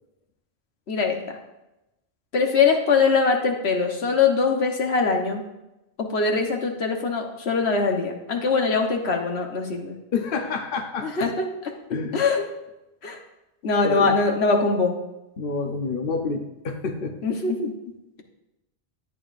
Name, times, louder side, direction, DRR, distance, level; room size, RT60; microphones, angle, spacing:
voice 1, 0.9-1.4 2.3-5.4 6.0-10.0 11.0-11.7 12.1-12.4 13.0-13.2 13.6-14.9 17.2-17.7, left 4 dB, 85° left, 3 dB, 1.4 m, -22 dB
voice 2, 10.1-11.3 11.9-12.2 13.8-14.1 15.4-17.2, left 4 dB, 60° left, 4 dB, 1.0 m, -28 dB
13.5 x 8.9 x 2.6 m, 0.95 s
omnidirectional pair, 1.1 m